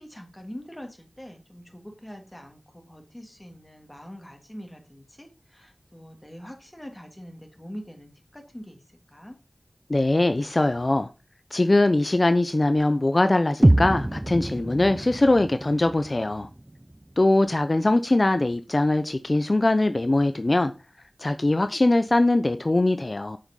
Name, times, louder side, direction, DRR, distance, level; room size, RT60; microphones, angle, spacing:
voice 1, 0.0-8.8 9.1-9.4, equal, 20° left, 3.1 m, -43 dB
voice 2, 9.9-11.1 11.5-16.5 17.2-20.7 21.2-23.4, left 2 dB, 45° left, 0.8 m, -22 dB
sound 1, 13.6-17.6, right 1 dB, 25° right, 0.6 m, -25 dB
7.8 x 6.5 x 5.5 m
wide cardioid pair, 50°, 0 cm